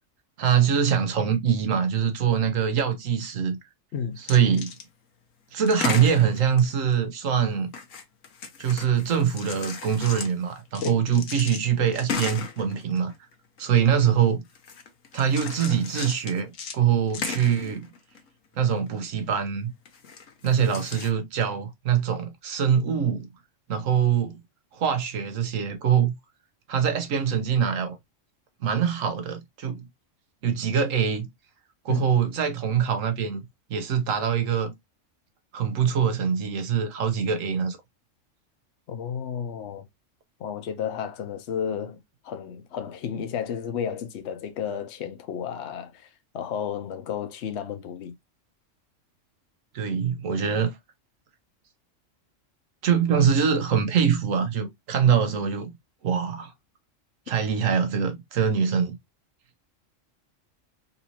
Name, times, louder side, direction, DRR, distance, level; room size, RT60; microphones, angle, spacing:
voice 1, 0.4-3.6 4.2-4.7 5.5-7.7 8.6-13.1 13.6-14.4 15.1-17.9 18.6-19.7 20.4-23.3 23.7-24.4 24.7-26.1 26.7-28.0 28.6-29.8 30.4-31.3 31.8-33.4 33.7-34.7 35.5-37.8 49.7-50.7 52.8-55.7 56.0-56.5 57.3-59.0, right 7 dB, 80° right, 1.3 m, -23 dB
sound 1, 4.2-4.8 5.6-7.0 7.7-13.3 13.6-13.7 14.5-16.8 17.1-18.3 18.5-19.1 19.9-21.1, left 5 dB, 80° left, 1.2 m, -35 dB
voice 2, 38.9-39.9 40.4-42.0 42.2-46.1 46.3-48.1, left 8 dB, 65° left, 0.9 m, -32 dB
4.1 x 2.6 x 2.8 m
omnidirectional pair, 1.3 m